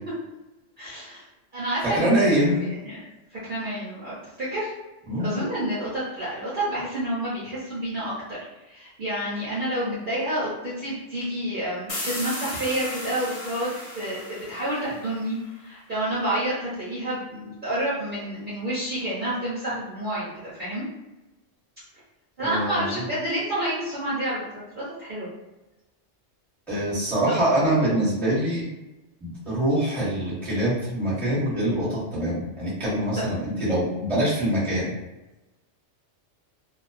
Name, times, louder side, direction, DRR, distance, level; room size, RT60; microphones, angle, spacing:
voice 1, 0.8-1.2 1.5-3.0 3.3-4.7 5.2-8.1 8.7-13.7 13.9-15.4 15.6-20.8 22.4-25.3 27.3-27.4 33.2-33.3, right 1 dB, 50° right, -9 dB, 0.7 m, -29 dB
voice 2, 1.9-2.6 5.1-5.3 22.4-23.0 26.7-28.7 29.2-34.9, right 1 dB, ahead, -10 dB, 0.9 m, -24 dB
sound 1, 11.9-15.5, left 1 dB, 40° left, 0.5 m, -35 dB
2.3 x 2.2 x 2.4 m, 1.0 s
omnidirectional pair, 1.2 m